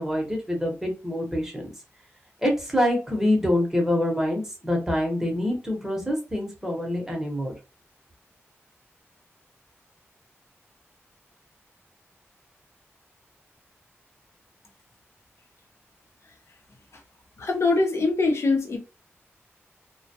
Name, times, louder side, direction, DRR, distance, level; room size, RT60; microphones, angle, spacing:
voice 1, 0.0-1.7 2.4-7.5, left 1 dB, 10° right, 0.9 m, -25 dB
voice 2, 17.4-18.8, left 3 dB, 65° left, 0.6 m, -23 dB
2.2 x 2.0 x 2.8 m
cardioid pair, 70°, 5 cm